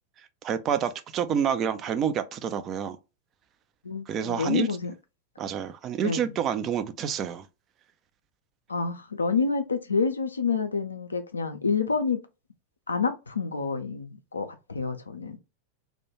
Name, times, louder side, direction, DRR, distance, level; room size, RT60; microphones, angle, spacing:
voice 1, 0.4-3.0 4.1-4.7 5.4-7.5, right 8 dB, 30° right, 0.3 m, -28 dB
voice 2, 3.8-4.9 6.0-6.2 8.7-12.2 12.9-15.4, left 5 dB, 75° left, 0.4 m, -28 dB
2.2 x 2.1 x 3.0 m
figure-of-eight pair, 90°, 0 cm